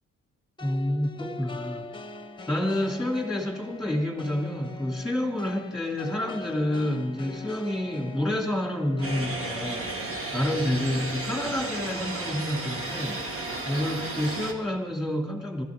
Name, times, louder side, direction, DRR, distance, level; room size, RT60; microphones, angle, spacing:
sound 1, 0.6-10.2, left 2 dB, 15° left, 1.1 m, -42 dB
voice 1, 0.6-1.8 2.5-10.0 10.3-15.6, left 1 dB, ahead, 1 dB, 3.0 m, -29 dB
sound 2, 9.0-14.5, right 2 dB, 45° right, 2.1 m, -33 dB
16.0 x 14.0 x 3.9 m, 1.1 s
cardioid pair, 90°, 30 cm